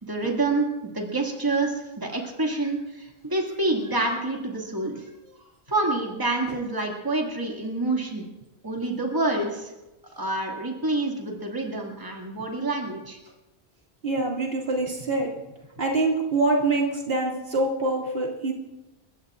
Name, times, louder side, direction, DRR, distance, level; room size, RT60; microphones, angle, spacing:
voice 1, 0.0-0.7 0.9-5.0 5.7-8.3 8.6-9.7 10.2-13.2, right 2 dB, 20° right, 0 dB, 2.2 m, -27 dB
voice 2, 14.0-15.3 15.8-18.5, right 2 dB, 65° right, -2 dB, 2.5 m, -25 dB
30.0 x 14.5 x 2.5 m, 1.0 s
omnidirectional pair, 1.1 m